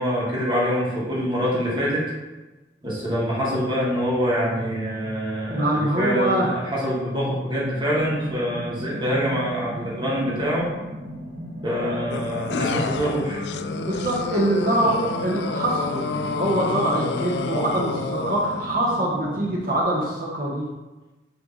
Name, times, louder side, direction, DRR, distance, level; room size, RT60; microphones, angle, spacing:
voice 1, 0.0-2.1 2.8-10.7 11.6-13.4, equal, 25° right, -6 dB, 1.9 m, -25 dB
voice 2, 5.5-6.5 13.7-16.0 16.4-20.7, right 1 dB, 50° right, -4 dB, 1.3 m, -24 dB
sound 1, 7.9-19.8, right 1 dB, 85° right, 1.4 m, -36 dB
sound 2, 12.1-18.7, left 4 dB, 70° left, 0.4 m, -29 dB
8.9 x 3.4 x 4.1 m, 1.1 s
head